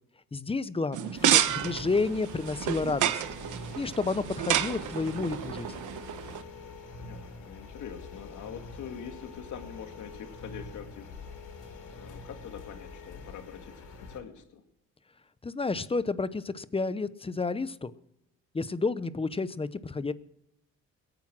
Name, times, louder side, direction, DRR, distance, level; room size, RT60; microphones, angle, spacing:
voice 1, 0.3-3.2 3.8-5.7 15.4-17.9 18.5-20.1, left 3 dB, 20° left, 16 dB, 0.8 m, -30 dB
sound 1, 0.9-6.4, right 11 dB, 80° right, 1.1 m, -30 dB
sound 2, 1.1-14.2, left 3 dB, 90° left, 4.2 m, -45 dB
voice 2, 6.9-11.2 11.9-14.6, left 8 dB, 75° left, 6 dB, 2.2 m, -44 dB
22.0 x 9.0 x 6.1 m, 0.84 s
cardioid pair, 90°, 30 cm